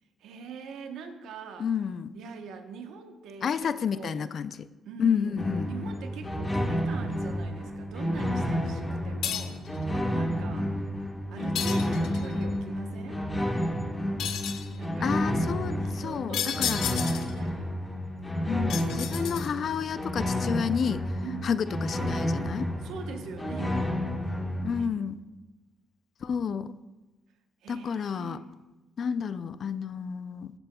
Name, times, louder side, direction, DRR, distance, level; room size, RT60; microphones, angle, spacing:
voice 1, 0.2-1.7 2.1-4.3 4.9-5.4 5.7-9.6 10.1-10.7 11.3-13.2 14.7-15.1 15.8-17.8 21.2-21.5 22.8-23.9 24.7-24.9 27.6-28.5, right 6 dB, 85° right, 6 dB, 1.0 m, -43 dB
voice 2, 1.6-2.1 3.4-4.7 5.0-5.7 15.0-16.8 18.5-21.1 21.4-22.7 24.6-25.2 26.2-26.8 27.7-28.4 29.0-30.5, left 7 dB, 55° left, 14 dB, 0.4 m, -30 dB
sound 1, 5.4-24.8, equal, 20° left, 1.3 m, -30 dB
sound 2, 9.2-9.7 11.5-12.3 14.2-14.7 16.3-17.4 18.7-19.7, left 9 dB, 85° left, 0.7 m, -32 dB
15.5 x 8.0 x 2.3 m, 1.1 s
cardioid pair, 90°, 0 cm